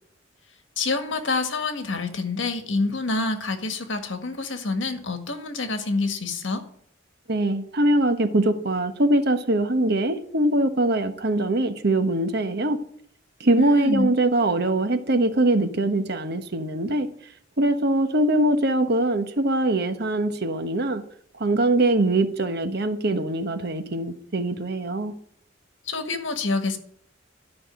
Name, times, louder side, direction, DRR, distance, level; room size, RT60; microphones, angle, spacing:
voice 1, 0.8-6.6 13.6-14.1 25.9-26.8, left 3 dB, 75° left, 1.8 m, -27 dB
voice 2, 7.3-12.8 13.4-17.1 17.6-21.0 21.3-25.1, right 1 dB, 55° right, 1.2 m, -22 dB
13.0 x 5.9 x 9.2 m
head